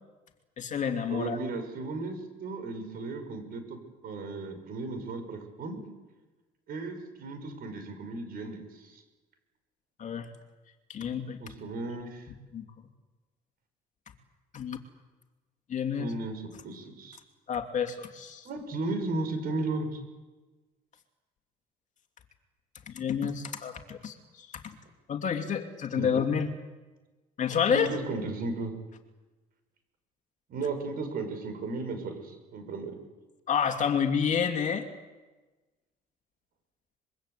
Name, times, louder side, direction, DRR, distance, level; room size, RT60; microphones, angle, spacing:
voice 1, 0.6-1.4 10.0-10.3 10.9-11.4 12.5-12.6 14.5-14.8 15.7-16.1 17.5-18.5 22.9-24.6 25.1-26.5 27.4-27.9 33.5-34.8, left 7 dB, 45° left, 6 dB, 2.7 m, -29 dB
voice 2, 1.1-3.8 4.0-5.8 6.7-9.0 11.4-12.3 16.0-17.2 18.4-20.0 26.0-26.1 27.7-28.7 30.5-33.0, right 3 dB, 60° right, 7 dB, 6.2 m, -35 dB
25.0 x 23.0 x 8.3 m, 1.2 s
cardioid pair, 110°, 17 cm